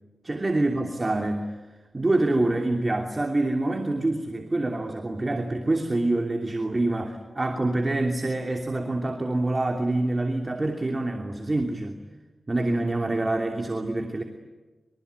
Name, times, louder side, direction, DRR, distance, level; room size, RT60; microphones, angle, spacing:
voice 1, 0.2-1.6 1.9-12.0 12.5-14.2, right 2 dB, 30° right, 3 dB, 2.8 m, -26 dB
25.5 x 24.5 x 9.5 m, 1.2 s
wide cardioid pair, 85°, 0 cm